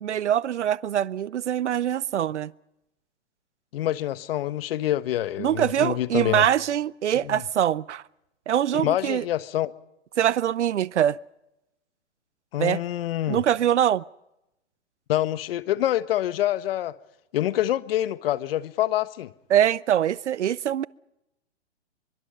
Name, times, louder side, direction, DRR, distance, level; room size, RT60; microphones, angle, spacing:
voice 1, 0.0-2.5 5.4-8.0 8.5-9.2 10.2-11.2 12.6-12.8 13.3-14.0 19.5-20.9, right 10 dB, 75° right, 0.7 m, -23 dB
voice 2, 3.7-6.5 7.1-7.5 8.7-9.7 12.5-13.4 15.1-17.0 17.3-19.3, left 13 dB, 55° left, 1.3 m, -26 dB
24.5 x 23.5 x 5.5 m
hypercardioid pair, 130°, 35 cm